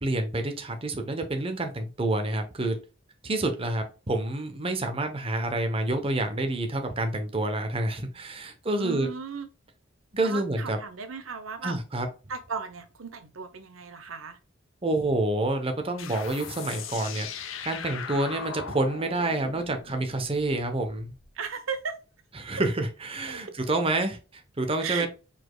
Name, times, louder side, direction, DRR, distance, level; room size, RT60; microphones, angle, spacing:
voice 1, 0.0-2.7 3.2-9.1 10.1-10.8 11.6-12.1 14.8-17.3 17.6-21.1 22.4-25.1, right 2 dB, 30° right, 0.8 m, -28 dB
voice 2, 8.7-9.5 10.2-11.8 12.3-14.4 21.3-22.0 23.3-23.4 24.8-25.1, right 5 dB, 80° right, 0.8 m, -36 dB
sound 1, 16.0-21.3, left 6 dB, 75° left, 0.7 m, -39 dB
5.0 x 4.2 x 2.2 m
head